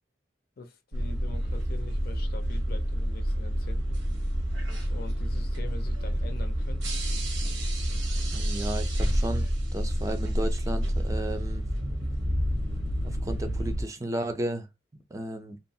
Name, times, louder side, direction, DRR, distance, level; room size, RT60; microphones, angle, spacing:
voice 1, 0.6-4.0 4.9-7.1, left 3 dB, 55° left, 0.5 m, -44 dB
sound 1, 0.9-13.8, equal, 90° right, 0.9 m, -28 dB
voice 2, 8.3-11.7 13.0-14.7 14.9-15.6, right 1 dB, 15° right, 0.4 m, -34 dB
2.8 x 2.3 x 2.7 m
head